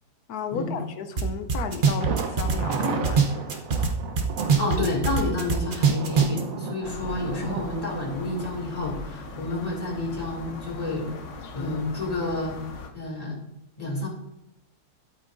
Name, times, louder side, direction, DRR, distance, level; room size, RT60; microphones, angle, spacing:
voice 1, 0.3-3.4, left 6 dB, 75° left, 8 dB, 1.3 m, -34 dB
sound 1, 1.2-1.3 1.5-3.9 4.2-6.4, right 5 dB, 40° right, 0.9 m, -22 dB
Thunder, 2.0-9.8 10.1-10.2 10.6-10.7, right 4 dB, 65° right, 1.3 m, -34 dB
voice 2, 4.6-11.1 11.5-12.6 12.9-13.4 13.8-14.1, left 2 dB, 25° left, -2 dB, 2.5 m, -29 dB
sound 2, 6.8-12.9, left 4 dB, 55° left, 1.1 m, -40 dB
11.0 x 8.6 x 2.6 m, 0.89 s
omnidirectional pair, 1.6 m